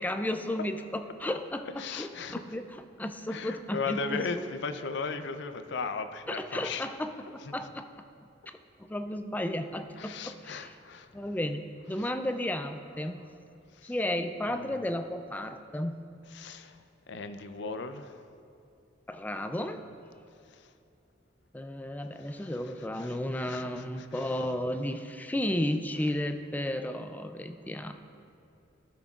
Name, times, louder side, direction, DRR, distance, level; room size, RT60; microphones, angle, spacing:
voice 1, 0.0-4.5 6.3-7.9 8.5-10.8 11.1-13.3 13.8-16.1 19.1-19.8 21.5-27.9, left 1 dB, 10° left, 8 dB, 0.3 m, -33 dB
voice 2, 1.8-2.5 3.3-6.9 7.4-7.5 10.0-11.1 11.9-12.1 13.7-13.9 14.5-14.7 16.3-16.8 17.1-18.3 20.5-20.7 22.2-24.4, left 4 dB, 65° left, 9 dB, 0.5 m, -37 dB
16.5 x 5.9 x 2.4 m, 2.6 s
head